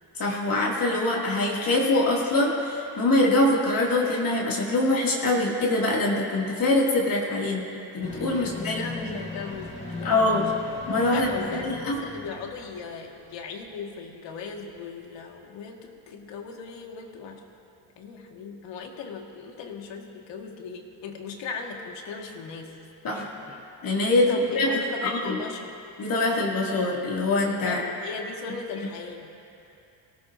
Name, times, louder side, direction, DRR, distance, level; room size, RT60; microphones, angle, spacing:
voice 1, 0.1-7.6 7.9-9.2 10.0-10.5 10.9-12.0 23.0-23.5 23.8-24.7 25.0-25.4 26.0-27.8, left 2 dB, 50° left, -3 dB, 2.5 m, -24 dB
voice 2, 7.4-8.0 8.3-10.4 11.1-17.4 18.0-22.8 24.2-25.7 27.6-29.3, left 5 dB, 75° left, 1 dB, 1.9 m, -38 dB
sound 1, 8.0-13.0 13.3-13.4, left 3 dB, 15° left, 3.9 m, -38 dB
23.5 x 18.0 x 2.7 m, 2.6 s
cardioid pair, 120°, 44 cm